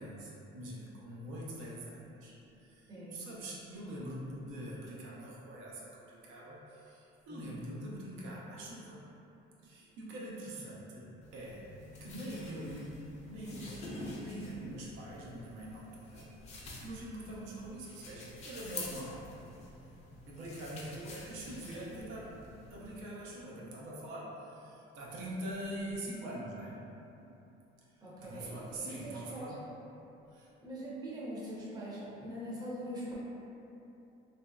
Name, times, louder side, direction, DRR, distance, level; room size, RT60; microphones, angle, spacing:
voice 1, 0.0-9.0 9.6-11.7 12.0-12.9 13.2-16.5 16.8-19.4 20.3-22.4 22.7-26.8 27.9-29.6 30.3-30.5, right 1 dB, 85° right, -5 dB, 0.5 m, -44 dB
voice 2, 2.9-3.3 7.3-7.6 21.7-21.9 28.0-29.6 30.6-33.2, equal, 20° right, -7 dB, 0.6 m, -43 dB
sound 1, 11.2-23.0, left 2 dB, 35° left, 0.5 m, -48 dB
2.9 x 2.6 x 2.2 m, 2.9 s
cardioid pair, 165°, 20 cm